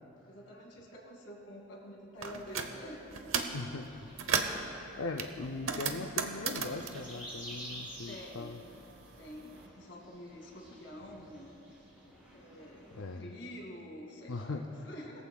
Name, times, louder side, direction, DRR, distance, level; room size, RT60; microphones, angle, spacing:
voice 1, 0.3-3.3 8.1-8.8 9.2-11.6 12.3-14.6 14.8-15.2, equal, 65° left, 0 dB, 2.3 m, -48 dB
sound 1, 2.2-2.7 3.1-3.6 4.0-4.6 5.2-8.1 8.4-9.5, right 6 dB, 80° right, 0.9 m, -35 dB
voice 2, 3.5-4.5 5.0-8.6 12.9-13.3 14.3-14.9, left 3 dB, 85° left, 3 dB, 0.6 m, -40 dB
sound 2, 3.9-13.2, equal, 5° right, 3.4 m, -51 dB
21.0 x 14.5 x 2.3 m, 2.9 s
head